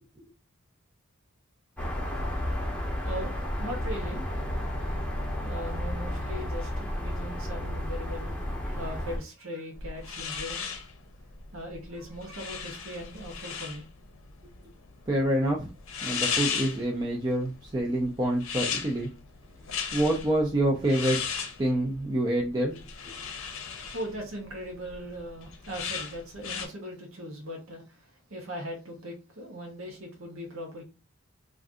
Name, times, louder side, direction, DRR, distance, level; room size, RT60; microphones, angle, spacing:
sound 1, 1.8-9.2, equal, 5° left, 0.7 m, -32 dB
voice 1, 3.0-4.2 5.4-10.6 11.5-13.9 23.7-30.8, equal, 65° right, 0.9 m, -39 dB
sound 2, 9.7-26.7, left 6 dB, 65° left, 0.6 m, -37 dB
voice 2, 15.1-15.7 16.0-19.1 19.9-21.2 21.6-22.8, right 1 dB, 20° right, 0.4 m, -26 dB
2.5 x 2.5 x 3.6 m
head